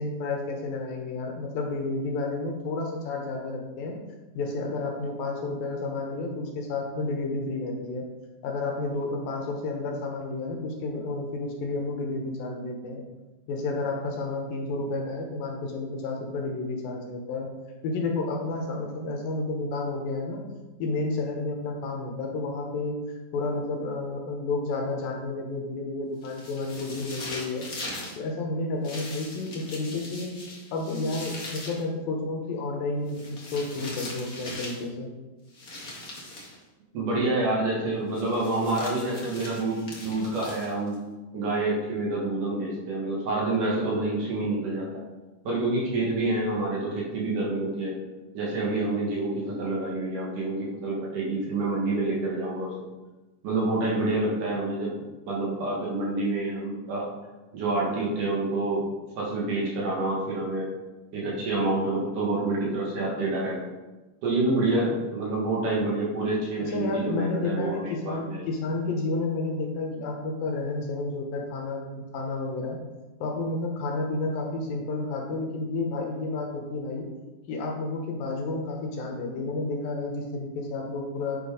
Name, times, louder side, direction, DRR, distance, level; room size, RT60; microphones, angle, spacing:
voice 1, 0.0-4.0 4.3-8.0 8.4-13.0 13.5-17.5 17.8-20.4 20.8-23.0 23.3-27.7 28.2-30.3 30.7-35.1 66.6-72.8 73.2-77.0 77.5-81.4, left 3 dB, 80° left, 1 dB, 2.9 m, -31 dB
sound 1, 26.2-28.2 28.8-31.8 33.1-34.9 35.5-36.6 38.1-40.9, left 2 dB, 55° left, 1.0 m, -40 dB
voice 2, 36.9-40.9 41.3-45.0 45.4-47.9 48.3-52.7 53.4-54.9 55.3-57.1 57.5-58.8 59.2-60.7 61.1-63.6 64.2-68.5, right 2 dB, 65° right, -4 dB, 3.1 m, -27 dB
8.8 x 4.5 x 5.0 m, 1.1 s
omnidirectional pair, 4.2 m